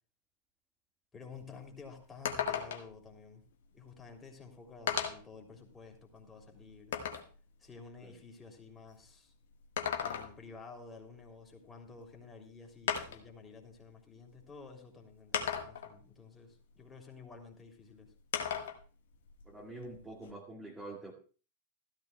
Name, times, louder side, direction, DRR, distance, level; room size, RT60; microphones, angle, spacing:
voice 1, 1.1-3.4 3.7-7.0 7.6-9.3 10.0-18.1, left 4 dB, 15° left, 2 dB, 3.2 m, -52 dB
sound 1, 1.3-1.4 1.7-1.8 2.3-3.0 4.1-4.2 4.9-5.3 5.9-7.3 9.6-10.5 12.0-12.1 12.9-13.3 14.3-14.4 15.3-16.0 18.3-18.8 19.2-20.3, left 8 dB, 60° left, 1.5 m, -36 dB
voice 2, 19.5-21.1, right 2 dB, 10° right, 0 dB, 1.9 m, -46 dB
16.5 x 14.0 x 2.3 m, 0.37 s
figure-of-eight pair, 90°, 0 cm